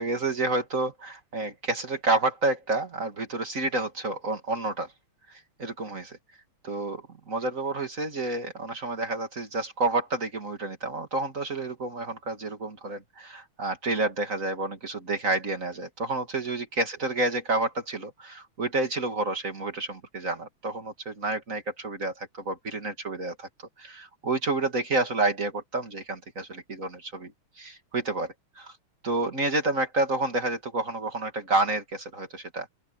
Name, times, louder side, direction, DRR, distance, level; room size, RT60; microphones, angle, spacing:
voice 1, 0.0-4.9 5.3-6.2 6.6-23.5 23.8-27.3 27.6-28.7 29.0-32.7, right 2 dB, 35° right, 2.5 m, -29 dB
open air
omnidirectional pair, 2.4 m